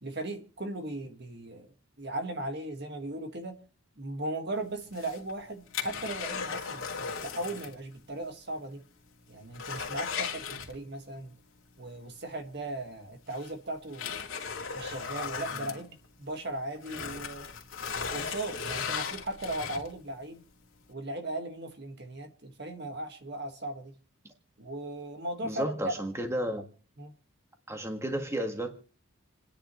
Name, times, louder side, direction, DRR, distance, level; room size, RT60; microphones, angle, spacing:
voice 1, 0.0-1.7 2.0-3.6 4.0-8.8 9.3-11.4 11.8-14.2 14.7-17.5 18.1-20.4 20.9-23.9 24.6-25.9 26.4-26.5 27.0-27.1, right 1 dB, 50° right, 1.8 m, -37 dB
sound 1, 4.8-7.8 8.1-8.2 8.7-8.8 9.1-11.1 12.6-12.7 13.3-16.4 16.8-20.1 20.6-20.7, left 6 dB, 65° left, 2.4 m, -37 dB
voice 2, 25.4-26.7 27.7-28.8, right 1 dB, 15° right, 1.6 m, -32 dB
29.0 x 10.0 x 3.1 m
head